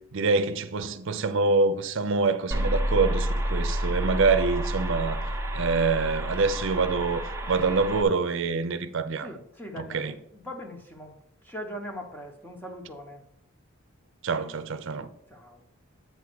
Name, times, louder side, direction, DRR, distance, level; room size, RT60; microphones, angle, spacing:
voice 1, 0.1-5.3 5.5-9.3 9.8-10.1 14.2-15.1, right 4 dB, 60° right, 0.6 m, -26 dB
sound 1, 2.5-8.0, right 1 dB, 15° right, 0.8 m, -29 dB
voice 2, 9.2-11.2 11.4-13.2 15.3-15.6, equal, 10° left, 1.0 m, -40 dB
8.3 x 3.6 x 6.1 m
head